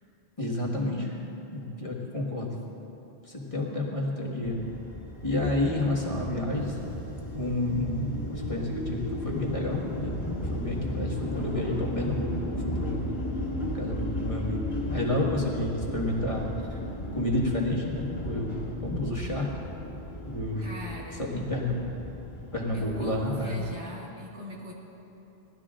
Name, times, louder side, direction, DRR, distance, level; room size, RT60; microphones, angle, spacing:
voice 1, 0.4-1.2 1.5-2.5 3.3-4.6 5.2-6.8 7.3-10.2 10.5-13.0 13.7-16.8 17.1-19.5 20.3-20.6 21.2-21.8 22.5-23.6, left 1 dB, 30° left, -3 dB, 1.8 m, -30 dB
sound 1, 4.4-23.7, left 1 dB, 60° left, 2.5 m, -35 dB
voice 2, 20.6-21.3 22.7-24.7, left 1 dB, 85° right, -3 dB, 2.3 m, -40 dB
18.5 x 12.0 x 3.8 m, 2.9 s
omnidirectional pair, 1.1 m